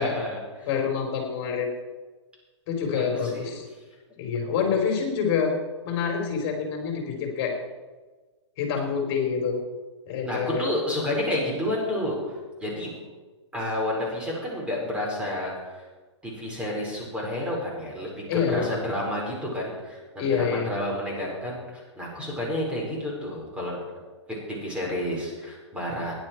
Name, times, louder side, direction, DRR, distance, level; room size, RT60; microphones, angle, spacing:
voice 1, 0.0-0.7 2.9-3.5 10.2-12.3 12.6-12.9 13.5-15.9 16.2-23.8 24.3-26.1, left 1 dB, 5° right, -3 dB, 5.0 m, -30 dB
voice 2, 0.7-1.7 2.7-3.7 4.2-5.5 5.8-7.5 8.6-9.6 10.1-10.7 18.3-18.8 20.2-20.7, left 6 dB, 40° left, 2 dB, 4.1 m, -26 dB
16.5 x 10.5 x 4.6 m, 1.3 s
hypercardioid pair, 130°, 15 cm